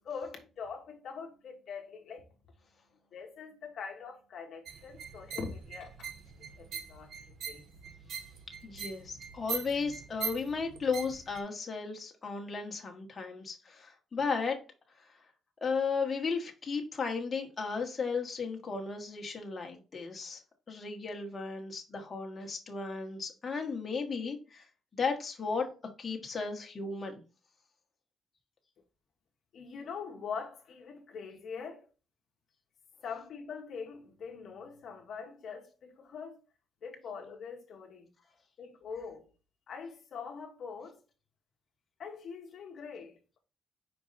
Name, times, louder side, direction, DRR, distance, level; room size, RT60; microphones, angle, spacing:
voice 1, 0.0-2.3 3.1-6.1 6.6-7.6 29.5-31.9 33.0-36.4 36.8-38.1 38.6-39.3 39.7-41.0 42.0-43.4, left 5 dB, 50° left, 1.2 m, -43 dB
sound 1, 4.7-11.4, right 6 dB, 65° right, 1.0 m, -42 dB
voice 2, 8.6-14.6 15.6-20.4 20.7-24.6 24.9-25.7 26.0-27.2, left 5 dB, 25° left, 1.3 m, -35 dB
5.2 x 4.6 x 4.0 m
cardioid pair, 150°, 0 cm